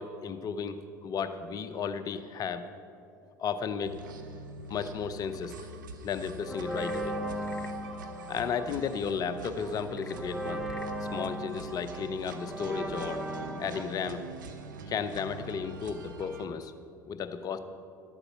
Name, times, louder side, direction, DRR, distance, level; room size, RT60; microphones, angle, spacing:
voice 1, 0.0-2.6 3.4-4.0 4.7-5.7 6.0-7.1 8.3-10.6 11.1-13.2 13.6-14.2 14.9-16.7 17.1-17.6, left 6 dB, 35° left, 10 dB, 0.7 m, -34 dB
sound 1, 3.8-16.5, right 3 dB, 70° right, 0.7 m, -45 dB
sound 2, 6.5-13.8, right 1 dB, 5° right, 0.8 m, -37 dB
Frog / Percussion / Wood, 6.7-7.9 9.8-11.0, left 5 dB, 85° left, 0.4 m, -51 dB
12.0 x 8.0 x 5.8 m, 2.5 s
figure-of-eight pair, 70°, 11 cm